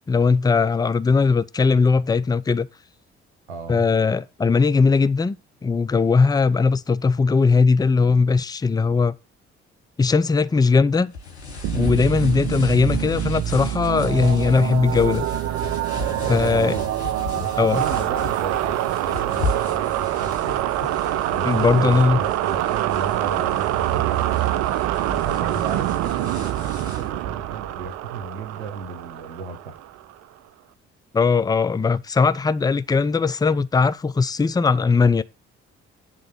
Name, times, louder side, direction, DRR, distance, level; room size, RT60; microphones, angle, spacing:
voice 1, 0.1-2.7 3.7-5.4 5.6-9.1 10.0-11.1 11.7-15.3 16.3-16.8 17.6-17.8 21.4-22.2 31.1-35.2, left 4 dB, 10° left, 0.5 m, -19 dB
voice 2, 3.5-3.9 16.0-17.0 17.3-20.6 21.3-24.4 25.0-29.8, right 6 dB, 80° right, 1.2 m, -34 dB
sound 1, 11.1-27.1, left 3 dB, 85° left, 1.1 m, -35 dB
sound 2, 11.6-30.1, right 13 dB, 55° right, 0.6 m, -25 dB
9.9 x 3.8 x 5.8 m
figure-of-eight pair, 45°, 32 cm